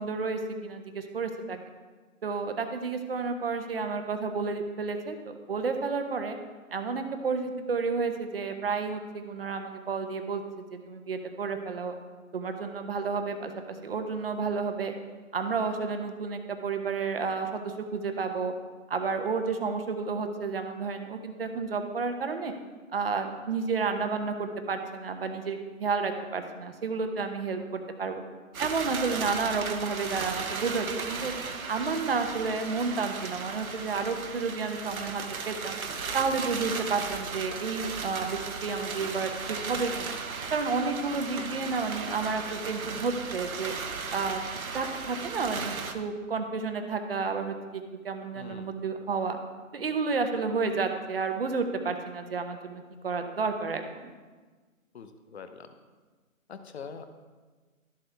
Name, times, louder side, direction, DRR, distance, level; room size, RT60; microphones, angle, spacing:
voice 1, 0.0-1.6 2.2-6.4 6.7-10.4 10.7-11.9 12.3-14.9 15.3-18.5 18.9-22.5 22.9-28.2 28.6-31.3 31.7-35.8 36.1-40.1 40.5-43.7 44.1-44.4 44.7-49.4 49.7-54.1, right 4 dB, 45° right, 6 dB, 0.9 m, -31 dB
sound 1, 28.5-45.9, right 5 dB, 85° right, 1.1 m, -36 dB
voice 2, 48.3-48.7 54.9-55.7 56.5-57.0, left 6 dB, 50° left, 9 dB, 0.8 m, -43 dB
13.0 x 7.4 x 3.4 m, 1.4 s
hypercardioid pair, 160°, 41 cm